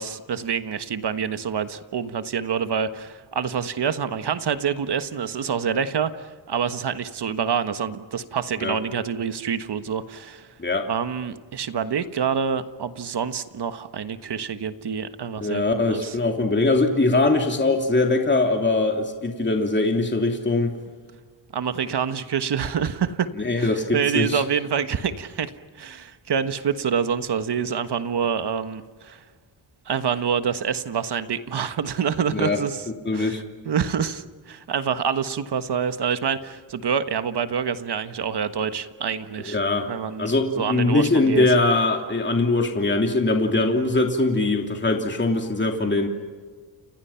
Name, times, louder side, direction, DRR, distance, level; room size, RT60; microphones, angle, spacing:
voice 1, 0.0-10.5 10.9-16.2 21.5-23.3 23.6-29.3 29.8-32.8 33.1-39.6 39.9-40.3 40.6-41.5, right 7 dB, 60° right, 10 dB, 1.4 m, -27 dB
voice 2, 15.4-20.7 23.4-24.4 32.3-32.6 33.0-33.4 39.5-39.9 40.2-46.1, left 2 dB, 25° left, 3 dB, 2.9 m, -22 dB
30.0 x 29.0 x 5.8 m, 1.5 s
cardioid pair, 100°, 46 cm